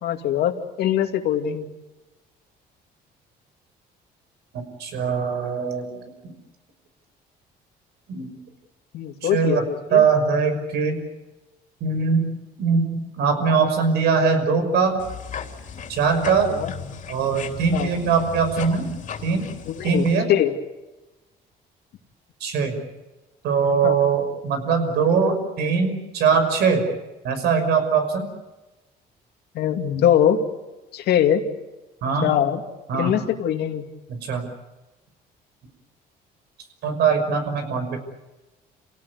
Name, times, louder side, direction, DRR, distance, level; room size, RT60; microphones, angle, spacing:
voice 1, 0.0-1.7 8.9-10.0 16.5-16.7 17.7-17.9 19.6-20.5 23.8-24.0 29.5-30.4 30.9-31.4 32.2-32.6 32.9-33.8, left 10 dB, 75° left, 5 dB, 2.5 m, -22 dB
voice 2, 4.5-6.3 8.1-8.4 9.2-9.7 9.9-11.0 11.8-14.9 15.9-16.5 17.1-19.5 19.8-20.3 22.4-22.8 23.4-26.9 27.2-28.3 32.0-32.3 32.9-33.1 34.1-34.5 36.8-38.0, right 5 dB, 75° right, 7 dB, 5.9 m, -22 dB
sound 1, 15.0-20.2, left 7 dB, 50° left, 3.3 m, -36 dB
28.0 x 17.5 x 9.6 m, 1.1 s
cardioid pair, 110°, 17 cm